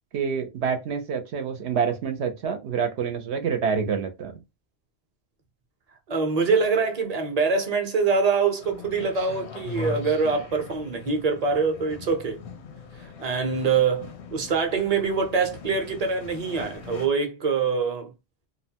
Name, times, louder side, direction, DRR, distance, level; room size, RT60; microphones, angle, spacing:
voice 1, 0.1-4.4, right 6 dB, 80° right, 0.9 m, -27 dB
voice 2, 6.1-12.4 13.2-18.1, right 5 dB, 40° right, 0.7 m, -24 dB
sound 1, 8.6-17.1, left 4 dB, 80° left, 0.9 m, -40 dB
2.8 x 2.1 x 2.8 m
omnidirectional pair, 1.1 m